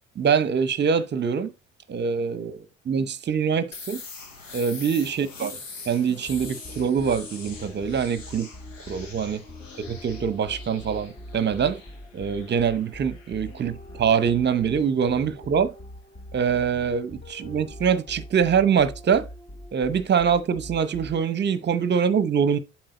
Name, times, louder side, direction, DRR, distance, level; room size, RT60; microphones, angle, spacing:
voice 1, 0.2-1.5 1.9-4.0 4.5-5.6 5.8-8.5 8.9-9.4 9.8-11.8 12.1-15.7 16.3-19.3 19.7-22.6, right 7 dB, 30° right, 0.8 m, -24 dB
sound 1, 3.7-15.3, left 4 dB, 85° left, 1.1 m, -44 dB
sound 2, 6.3-21.4, left 1 dB, 20° left, 1.0 m, -43 dB
7.8 x 4.3 x 4.1 m
figure-of-eight pair, 60°, 37 cm